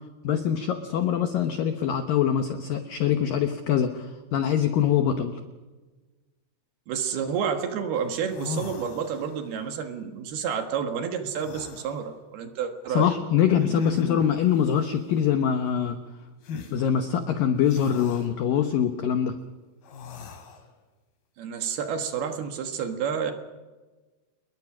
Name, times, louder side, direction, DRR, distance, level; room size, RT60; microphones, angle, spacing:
voice 1, 0.2-5.4 12.9-16.0 16.7-19.4, left 9 dB, 80° left, 7 dB, 2.0 m, -24 dB
voice 2, 6.9-13.1 21.4-23.3, right 7 dB, 65° right, 6 dB, 3.0 m, -30 dB
sound 1, 8.0-8.1 8.3-9.5 11.3-11.9 13.5-14.4 16.4-16.7 17.7-18.3 19.8-20.6, left 5 dB, 55° left, 4.1 m, -36 dB
27.5 x 21.5 x 6.1 m, 1.3 s
omnidirectional pair, 5.6 m